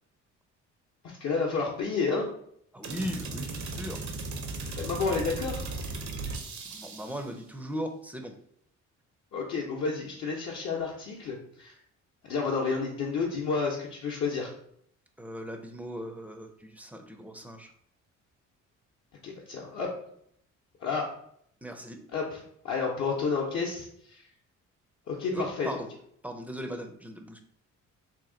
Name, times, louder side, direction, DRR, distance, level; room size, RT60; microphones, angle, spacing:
voice 1, 1.0-2.3 4.7-5.7 9.3-11.7 12.2-14.5 19.2-19.9 20.8-21.1 22.1-24.2 25.1-25.8, left 4 dB, 60° left, -3 dB, 0.8 m, -30 dB
voice 2, 2.7-4.0 6.7-8.3 15.2-17.7 21.6-22.0 25.3-25.9 26.2-27.4, equal, 5° right, 6 dB, 0.4 m, -38 dB
sound 1, 2.8-7.3, right 3 dB, 70° right, 0.7 m, -37 dB
2.9 x 2.7 x 3.7 m, 0.69 s
cardioid pair, 90°, 30 cm